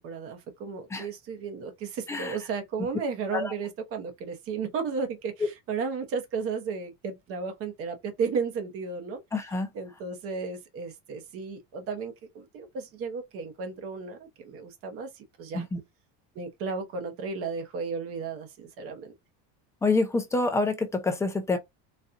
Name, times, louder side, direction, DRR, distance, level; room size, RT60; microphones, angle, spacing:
voice 1, 0.0-9.2 9.7-15.6 16.3-19.1, right 5 dB, 45° right, 1.0 m, -34 dB
voice 2, 9.3-9.7 15.5-15.8 19.8-21.6, left 3 dB, 10° left, 0.5 m, -27 dB
4.2 x 2.4 x 2.5 m
cardioid pair, 165°, 33 cm